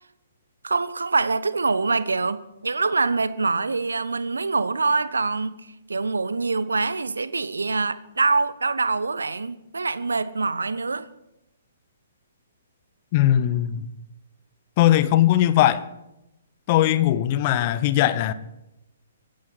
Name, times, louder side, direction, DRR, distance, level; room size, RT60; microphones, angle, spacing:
voice 1, 0.6-5.5 5.9-11.1, right 4 dB, 70° right, 0.9 m, -24 dB
voice 2, 13.1-13.9 14.8-15.8 16.7-18.3, left 13 dB, 35° left, 0.9 m, -19 dB
24.5 x 11.5 x 4.4 m
figure-of-eight pair, 125°, 0 cm